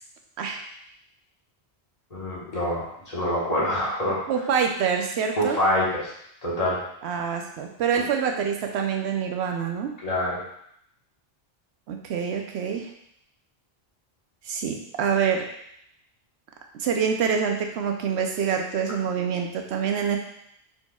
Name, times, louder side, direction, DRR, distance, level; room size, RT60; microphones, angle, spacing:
voice 1, 2.1-4.2 5.4-6.1 6.4-6.8 10.0-10.4, left 1 dB, 40° left, -7 dB, 1.4 m, -25 dB
voice 2, 4.3-5.6 7.0-9.9 11.9-12.9 14.5-15.4 16.8-20.2, right 7 dB, 85° right, 3 dB, 0.9 m, -26 dB
4.5 x 4.1 x 2.3 m, 0.73 s
omnidirectional pair, 1.1 m